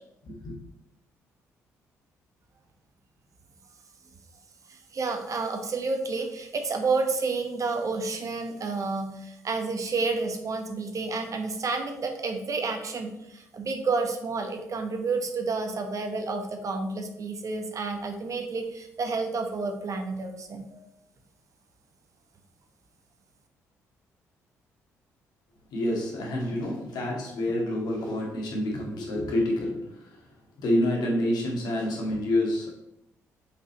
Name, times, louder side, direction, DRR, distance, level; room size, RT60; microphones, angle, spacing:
voice 1, 4.7-20.8, right 4 dB, 40° right, 5 dB, 1.1 m, -30 dB
voice 2, 25.7-30.1 30.6-32.7, left 1 dB, 60° left, -1 dB, 2.0 m, -28 dB
5.5 x 5.4 x 4.1 m, 0.83 s
figure-of-eight pair, 45°, 8 cm